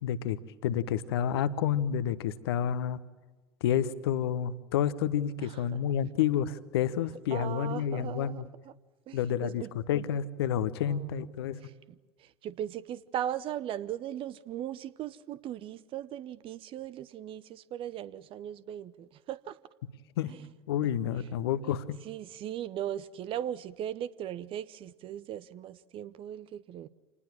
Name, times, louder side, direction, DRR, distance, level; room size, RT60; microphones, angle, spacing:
voice 1, 0.0-3.0 3.6-8.5 9.1-11.6 20.2-20.3 20.7-22.0, left 9 dB, 60° left, 1.2 m, -29 dB
voice 2, 5.4-5.8 7.3-8.4 9.1-9.7 10.8-11.7 12.2-19.6 20.3-20.4 22.0-26.9, right 11 dB, 40° right, 0.9 m, -38 dB
27.5 x 20.0 x 7.3 m
figure-of-eight pair, 70°, 14 cm